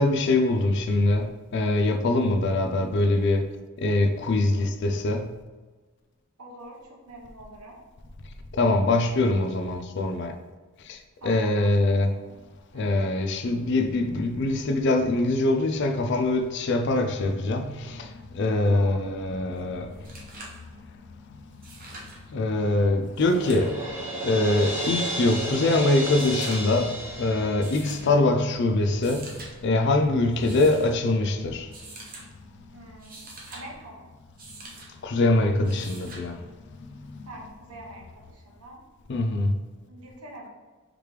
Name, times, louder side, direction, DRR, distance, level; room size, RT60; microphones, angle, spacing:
voice 1, 0.0-3.4 3.8-5.3 8.5-10.3 10.8-12.1 12.7-20.1 22.3-31.7 35.0-36.4 36.8-37.2 39.1-39.5, left 2 dB, 50° left, 0.4 m, -24 dB
voice 2, 6.4-7.8 11.2-12.4 12.7-13.0 18.7-19.1 32.7-33.2 33.5-34.1 37.2-38.8 39.9-40.5, right 1 dB, 90° right, 1.1 m, -45 dB
sound 1, 19.6-19.7 19.9-20.6 21.5-22.2 23.0-23.7 24.7-25.2 26.1-26.8 27.6-28.1 28.9-29.5 30.3-30.9 31.7-32.2 32.9-33.6 34.4-34.9 35.6-36.3 37.7-37.8, right 2 dB, 40° right, 0.9 m, -44 dB
Crash cymbal, 23.3-28.3, right 1 dB, 10° right, 1.3 m, -32 dB
5.0 x 3.2 x 3.2 m
head